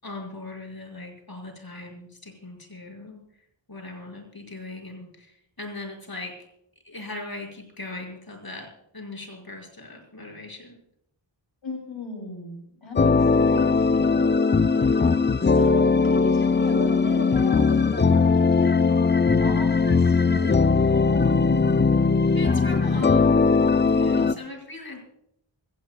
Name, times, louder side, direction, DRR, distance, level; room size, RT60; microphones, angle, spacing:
voice 1, 0.0-3.2 3.7-6.3 6.8-8.7 8.9-10.8 22.3-23.5 23.8-25.0, left 2 dB, 50° left, 1 dB, 5.8 m, -39 dB
voice 2, 11.6-23.4 24.0-24.4, left 3 dB, 80° left, 0 dB, 3.2 m, -36 dB
sound 1, 13.0-24.3, left 4 dB, 25° left, 0.5 m, -20 dB
24.5 x 18.0 x 2.3 m, 0.76 s
wide cardioid pair, 45°, 46 cm